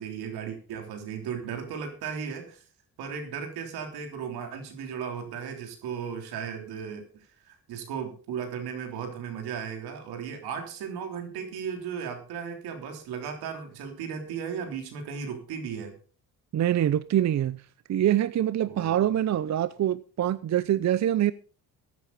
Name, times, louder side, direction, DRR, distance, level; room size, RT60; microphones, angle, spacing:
voice 1, 0.0-2.6 3.0-16.0 18.6-19.1, right 7 dB, 85° right, 3.4 m, -36 dB
voice 2, 16.5-17.6 17.9-21.3, right 11 dB, 45° right, 0.6 m, -25 dB
14.5 x 11.0 x 4.1 m
cardioid pair, 75°, 37 cm